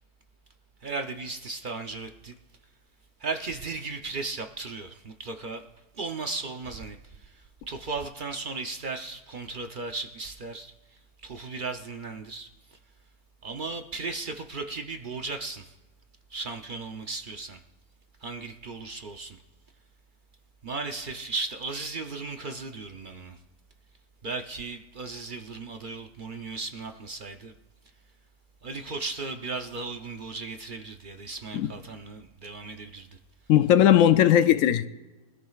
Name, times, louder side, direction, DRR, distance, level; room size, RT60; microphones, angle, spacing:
voice 1, 0.8-2.3 3.2-5.6 5.9-10.7 11.2-12.8 13.4-15.7 16.3-17.6 18.2-19.4 20.6-23.4 24.2-27.5 28.6-33.2, right 3 dB, 65° right, 0.4 m, -36 dB
voice 2, 33.5-34.9, left 11 dB, 70° left, 0.8 m, -18 dB
24.0 x 13.5 x 2.4 m
omnidirectional pair, 1.8 m